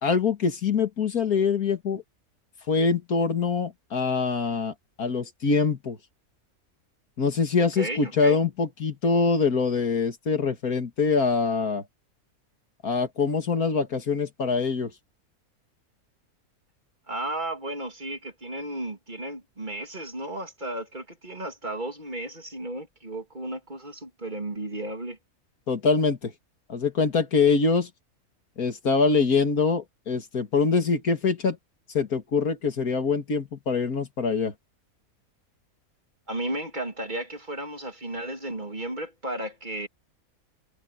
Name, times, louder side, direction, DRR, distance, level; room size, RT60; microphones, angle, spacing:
voice 1, 0.0-2.0 2.7-6.0 7.2-11.8 12.8-14.9 25.7-26.3 26.7-27.9 28.6-31.6 31.9-34.5, left 4 dB, 90° left, 2.6 m, -24 dB
voice 2, 7.8-8.4 17.1-25.2 36.3-39.9, right 1 dB, 30° right, 3.0 m, -34 dB
omnidirectional pair, 1.5 m